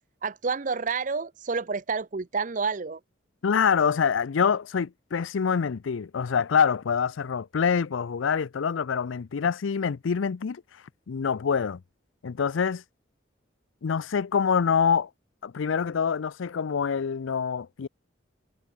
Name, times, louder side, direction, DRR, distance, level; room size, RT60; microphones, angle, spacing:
voice 1, 0.2-3.0, right 4 dB, 40° right, 0.7 m, -29 dB
voice 2, 3.4-11.8 12.2-12.8 13.8-15.1 15.4-17.9, left 6 dB, 85° left, 0.5 m, -26 dB
head